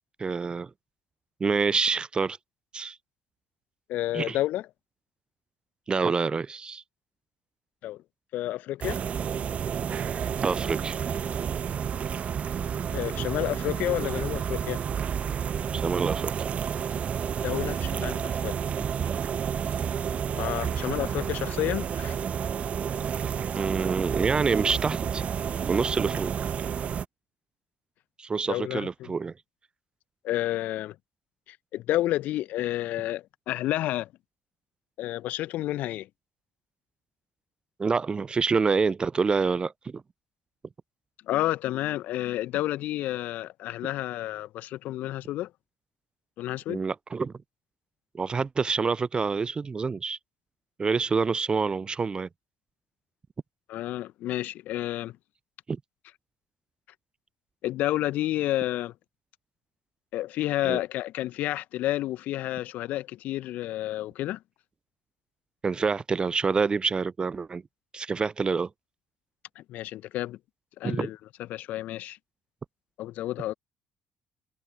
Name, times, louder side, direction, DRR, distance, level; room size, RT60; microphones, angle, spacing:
voice 1, 0.2-0.7 1.4-2.4 2.7-3.0 4.1-4.4 5.9-6.8 10.4-11.0 15.7-16.5 23.6-25.3 25.7-26.3 28.2-29.3 37.8-40.0 46.7-47.3 48.1-50.2 50.8-52.3 55.7-55.8 60.6-60.8 65.6-67.6 67.9-68.7 70.8-71.1, right 5 dB, 30° right, 0.4 m, -27 dB
voice 2, 3.9-4.7 7.8-8.0 8.3-9.0 12.9-14.8 17.4-18.6 19.7-19.8 20.3-22.2 28.5-29.1 30.2-30.9 31.5-34.1 35.0-36.1 41.3-45.5 46.4-46.8 53.7-55.2 57.6-58.9 60.1-64.4 69.5-70.4 70.8-72.2 73.0-73.5, left 15 dB, 60° left, 1.2 m, -30 dB
sound 1, 8.8-27.1, right 8 dB, 45° right, 1.1 m, -30 dB
figure-of-eight pair, 50°, 3 cm